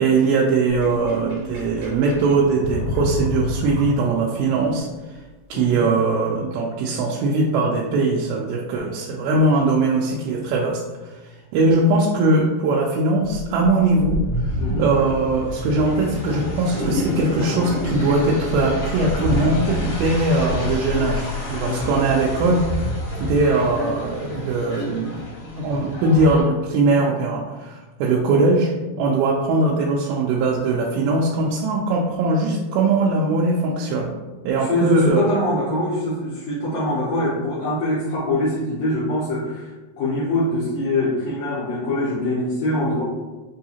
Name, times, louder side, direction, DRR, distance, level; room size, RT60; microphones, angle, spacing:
voice 1, 0.0-5.2 5.5-22.6 23.2-28.7 29.0-34.1 34.4-35.3, right 2 dB, 90° right, -2 dB, 2.4 m, -21 dB
Sink (filling or washing), 0.7-4.5, left 1 dB, 65° right, 1.6 m, -29 dB
voice 2, 5.5-5.9 14.6-14.8 21.6-21.9 34.5-43.0, left 1 dB, 80° left, -8 dB, 1.5 m, -24 dB
sound 1, 13.2-26.4, left 1 dB, 65° left, 1.4 m, -28 dB
5.4 x 2.7 x 2.8 m, 1.2 s
omnidirectional pair, 4.2 m